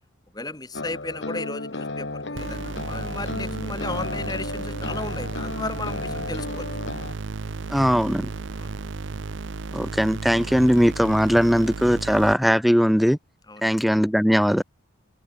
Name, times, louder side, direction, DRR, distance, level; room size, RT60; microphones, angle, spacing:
voice 1, 0.3-6.7 8.5-8.7 13.5-13.7, left 2 dB, 20° left, 1.8 m, -35 dB
sound 1, 0.7-7.1, left 2 dB, 55° left, 1.7 m, -33 dB
sound 2, 2.4-12.3, right 3 dB, 65° right, 0.7 m, -34 dB
voice 2, 7.7-8.3 9.7-13.2 13.6-14.6, equal, ahead, 0.4 m, -19 dB
head